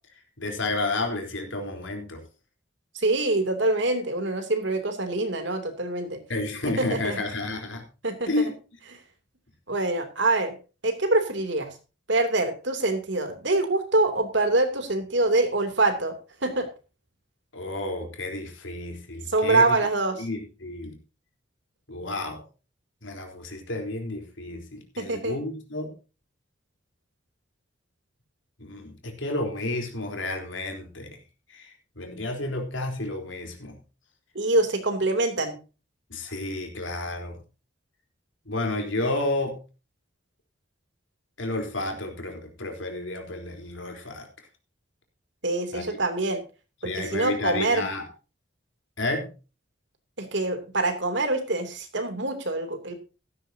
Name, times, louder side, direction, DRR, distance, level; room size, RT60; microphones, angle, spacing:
voice 1, 0.4-2.2 6.3-7.8 8.3-8.5 17.5-19.8 20.2-21.0 21.9-22.4 23.0-25.9 28.6-31.2 31.5-31.7 32.0-33.8 36.1-37.4 38.5-39.6 41.4-44.3 45.7-46.0 46.8-48.0 49.0-49.3, left 2 dB, 80° left, 4 dB, 3.9 m, -31 dB
voice 2, 2.9-6.2 6.8-7.2 8.0-8.3 9.7-10.5 10.8-11.7 12.1-16.1 16.4-16.7 19.3-20.3 25.0-25.4 34.3-35.6 45.4-46.4 46.8-47.9 50.2-52.9, right 2 dB, 70° right, 7 dB, 3.0 m, -25 dB
15.0 x 13.0 x 2.8 m, 0.33 s
head